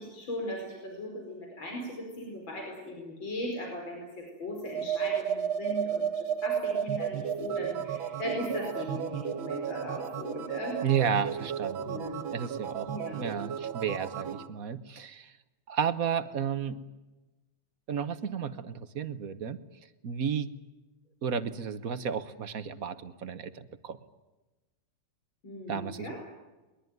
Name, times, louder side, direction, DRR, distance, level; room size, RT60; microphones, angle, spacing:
voice 1, 0.0-10.8 11.8-12.2 12.9-13.2 25.4-26.2, equal, 75° left, 0 dB, 5.7 m, -38 dB
sound 1, 4.6-14.5, right 8 dB, 85° right, 2.0 m, -33 dB
voice 2, 10.8-12.0 12.3-15.3 15.7-16.8 17.9-19.6 20.0-20.5 21.2-24.0 25.7-26.2, right 7 dB, 50° right, 12 dB, 1.4 m, -32 dB
22.0 x 21.5 x 9.4 m, 1.1 s
omnidirectional pair, 2.1 m